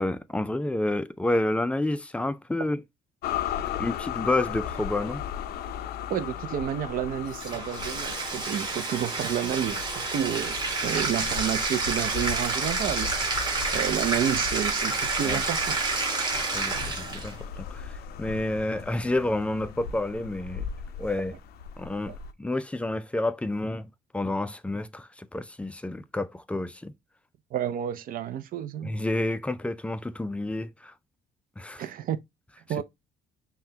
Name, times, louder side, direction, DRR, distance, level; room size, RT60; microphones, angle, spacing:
voice 1, 0.0-2.8 3.8-5.2 15.2-15.4 16.5-20.6 21.0-21.4 21.8-26.9 28.8-30.9 31.6-31.8 32.8-32.9, left 2 dB, 5° left, 0.3 m, -29 dB
sound 1, 3.2-22.3, left 8 dB, 70° left, 0.5 m, -37 dB
voice 2, 6.1-13.2 13.7-15.8 22.1-22.2 27.5-28.9 31.8-32.2 32.7-32.8, right 10 dB, 55° right, 0.5 m, -30 dB
Bathtub (filling or washing), 7.3-17.3, right 3 dB, 25° right, 1.2 m, -29 dB
5.6 x 2.2 x 2.7 m
cardioid pair, 110°, 17 cm